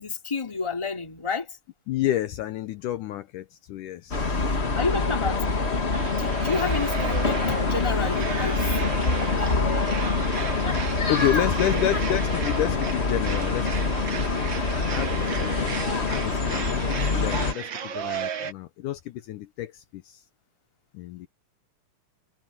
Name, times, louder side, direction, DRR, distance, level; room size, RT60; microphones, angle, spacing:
voice 1, 0.0-1.6 4.7-5.4 6.1-8.8 9.3-10.1 11.0-11.8, left 4 dB, 10° left, 2.4 m, -31 dB
voice 2, 1.9-4.7 11.1-15.8 16.1-20.2 20.9-21.3, left 13 dB, 75° left, 2.1 m, -30 dB
sound 1, 4.1-17.5, left 3 dB, 35° left, 1.1 m, -25 dB
sound 2, 5.9-18.5, right 8 dB, 75° right, 1.1 m, -35 dB
omnidirectional pair, 4.1 m